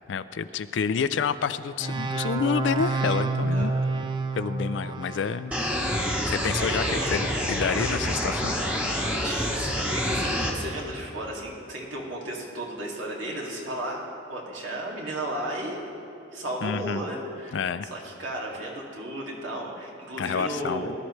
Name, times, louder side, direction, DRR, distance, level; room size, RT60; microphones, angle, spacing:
voice 1, 0.1-3.7 4.3-5.5 6.2-6.8 7.1-8.6 16.6-17.0 17.5-17.9 20.2-20.9, left 6 dB, 75° left, 12 dB, 0.4 m, -28 dB
sound 1, 1.8-5.4, right 3 dB, 25° right, 0.4 m, -28 dB
voice 2, 3.5-3.8 6.5-7.1 9.0-14.0 14.3-15.9 16.3-17.6 17.9-20.9, right 1 dB, 85° right, -3 dB, 2.4 m, -34 dB
sound 2, 5.5-10.5, equal, 5° right, 1.1 m, -27 dB
19.5 x 11.5 x 3.2 m, 2.7 s
head